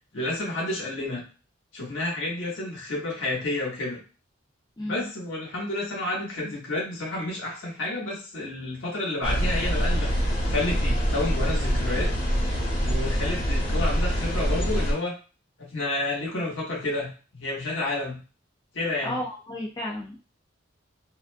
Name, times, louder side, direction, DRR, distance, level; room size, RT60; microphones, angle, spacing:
voice 1, 0.1-1.2 1.7-4.0 4.8-12.1 12.8-15.1 15.6-18.2 18.7-19.2, left 2 dB, 70° left, -3 dB, 1.1 m, -30 dB
voice 2, 4.8-5.1 19.0-20.2, left 1 dB, 20° left, -5 dB, 0.4 m, -33 dB
sound 1, 9.2-14.9, equal, 45° left, 1.2 m, -25 dB
2.5 x 2.2 x 2.5 m, 0.34 s
head